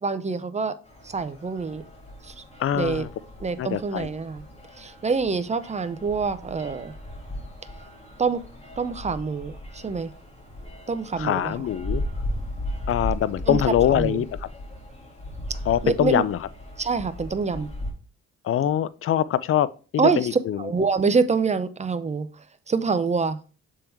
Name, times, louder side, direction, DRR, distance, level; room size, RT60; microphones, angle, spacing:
voice 1, 0.0-0.7 1.0-1.8 2.2-2.4 2.7-3.1 3.4-4.4 4.8-6.9 8.2-8.4 8.8-10.1 10.9-11.5 13.5-13.6 13.9-14.2 15.8-16.2 16.8-17.7 20.0-22.3 22.7-23.4, right 4 dB, 25° right, 0.6 m, -25 dB
sound 1, 0.8-17.9, left 1 dB, 20° left, 2.0 m, -36 dB
voice 2, 2.6-3.1 3.6-4.1 11.2-12.0 12.9-14.5 15.7-16.4 18.4-20.7, left 10 dB, 45° left, 0.5 m, -24 dB
6.8 x 3.7 x 4.5 m
cardioid pair, 90°, 30 cm